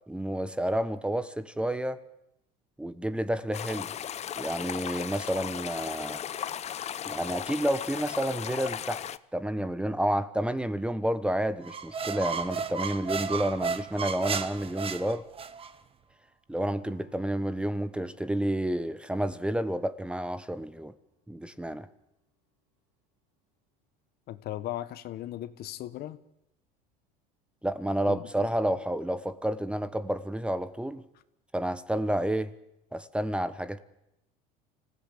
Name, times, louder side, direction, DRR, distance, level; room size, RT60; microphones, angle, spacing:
voice 1, 0.1-2.0 2.8-3.9 4.4-6.2 7.1-9.0 9.3-15.2 16.5-20.9 21.3-21.9 27.6-31.0 31.5-32.5 32.9-33.8, right 1 dB, 5° right, 1.1 m, -30 dB
sound 1, 3.5-9.2, left 9 dB, 35° left, 0.8 m, -36 dB
sound 2, 11.6-15.7, right 5 dB, 30° right, 1.4 m, -33 dB
sound 3, 16.5-23.2 23.7-23.8, equal, 80° right, 7.1 m, -62 dB
voice 2, 24.3-26.2 28.1-28.2, left 13 dB, 55° left, 1.3 m, -37 dB
25.5 x 16.0 x 8.4 m
supercardioid pair, 105°, 19 cm